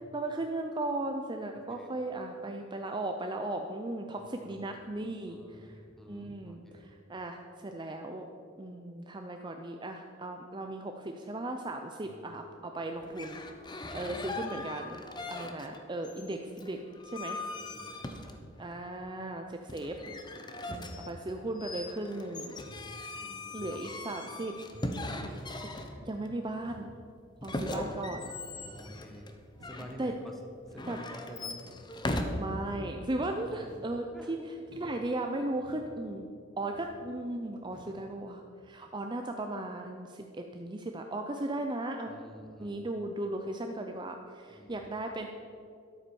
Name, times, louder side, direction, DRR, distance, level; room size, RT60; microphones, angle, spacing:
voice 1, 0.1-5.8 6.1-8.2 8.6-13.4 13.9-15.0 15.3-16.8 17.0-17.4 18.6-20.0 20.7-22.5 23.5-24.5 26.1-26.9 27.4-28.3 30.0-30.1 30.9-31.0 32.3-34.4 34.8-36.3 36.6-42.1 42.6-45.3, right 2 dB, 25° right, 4 dB, 0.6 m, -36 dB
voice 2, 4.2-4.6 5.3-6.9 12.0-12.2 13.8-14.5 17.5-18.5 20.4-21.1 23.1-23.8 24.9-25.5 27.9-28.2 28.5-29.3 29.6-30.4 30.6-31.6 33.3-33.7 34.1-34.5 42.1-42.8 44.5-44.8, equal, ahead, 2 dB, 1.4 m, -50 dB
sound 1, 13.0-15.8 16.0-18.7 19.7-26.3 27.4-29.9 30.7-32.2, left 2 dB, 25° left, 0.9 m, -39 dB
sound 2, 22.6-22.9 23.6-23.9 24.6-24.9 25.6-25.8 26.6-26.9 27.5-27.9 28.5-28.8 29.5-29.8 30.6-30.9 31.6-31.9 32.6-32.9 33.6-33.9 34.6-34.9 35.6-35.9 36.7-37.0 37.7-38.0 38.6-38.7, equal, 60° right, 1.8 m, -54 dB
12.0 x 8.9 x 7.0 m, 2.5 s
head